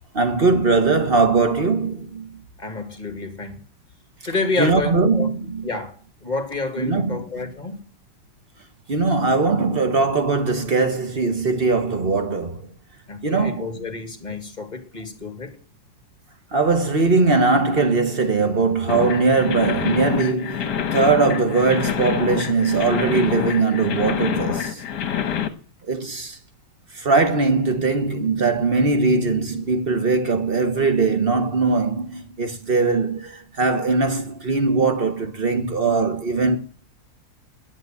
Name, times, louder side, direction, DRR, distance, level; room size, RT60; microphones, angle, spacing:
voice 1, 0.1-2.4 4.6-5.7 6.8-7.5 8.9-12.7 13.2-13.7 16.5-24.8 25.9-26.4 27.0-36.6, right 4 dB, 30° right, 1.4 m, -20 dB
voice 2, 2.6-3.6 4.3-5.3 5.6-7.8 13.1-15.6, left 3 dB, 20° left, 2.2 m, -29 dB
sound 1, 18.9-25.5, left 9 dB, 60° left, 1.7 m, -26 dB
11.0 x 9.4 x 8.7 m
omnidirectional pair, 2.2 m